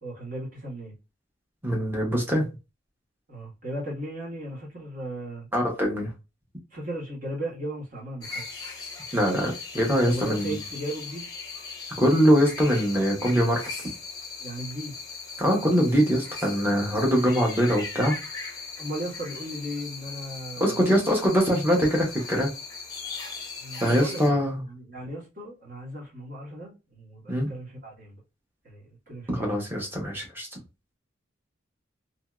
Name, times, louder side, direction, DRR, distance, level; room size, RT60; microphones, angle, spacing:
voice 1, 0.0-0.9 3.3-5.5 6.7-8.4 10.1-11.3 14.4-14.9 18.8-20.9 23.6-24.4 24.6-28.2 28.6-29.6, right 1 dB, 40° right, 1.4 m, -36 dB
voice 2, 1.6-2.5 5.5-6.1 9.1-10.5 12.0-13.6 15.4-18.2 20.6-22.5 23.8-24.6 27.3-27.5 29.3-30.5, equal, 10° right, 1.0 m, -23 dB
sound 1, 8.2-24.3, left 4 dB, 20° left, 0.8 m, -39 dB
2.9 x 2.7 x 2.3 m
head